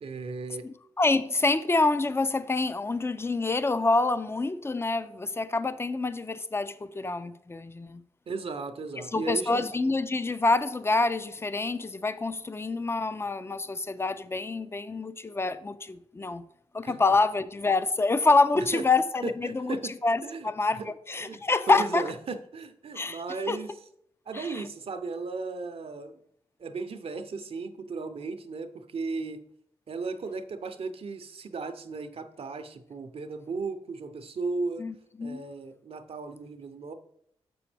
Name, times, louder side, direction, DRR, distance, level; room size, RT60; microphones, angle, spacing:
voice 1, 0.0-0.6 8.3-9.7 16.8-17.0 18.5-18.8 19.2-19.9 20.2-20.5 20.8-20.9 21.2-23.7 24.3-26.2 26.6-29.4 29.9-34.9 35.2-36.9, right 4 dB, 60° right, 0.7 m, -36 dB
voice 2, 0.6-8.0 9.0-16.4 16.7-22.0 22.9-23.6 24.3-24.6 34.8-35.4, left 3 dB, 20° left, 0.5 m, -27 dB
6.7 x 6.1 x 3.3 m
supercardioid pair, 45°, 11 cm